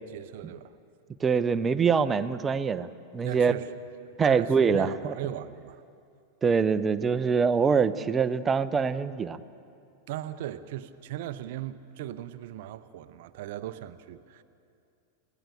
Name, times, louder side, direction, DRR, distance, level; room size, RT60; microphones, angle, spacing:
voice 1, 0.1-0.8 3.2-3.7 4.0-5.8 10.1-14.4, right 12 dB, 50° right, 13 dB, 0.7 m, -38 dB
voice 2, 1.2-2.9 3.1-3.5 4.2-5.1 6.4-9.4, right 5 dB, 20° right, 13 dB, 0.7 m, -24 dB
29.0 x 17.5 x 6.9 m, 2.5 s
figure-of-eight pair, 90°, 0 cm